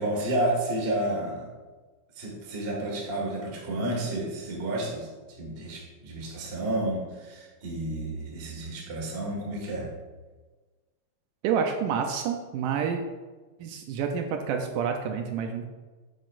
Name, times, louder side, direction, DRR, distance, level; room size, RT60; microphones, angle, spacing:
voice 1, 0.0-1.5 2.1-5.1 5.4-9.9, right 1 dB, 30° right, -2 dB, 1.0 m, -31 dB
voice 2, 11.4-13.0 13.6-15.7, right 7 dB, 80° right, 4 dB, 2.1 m, -28 dB
8.5 x 8.1 x 2.5 m, 1.3 s
omnidirectional pair, 3.9 m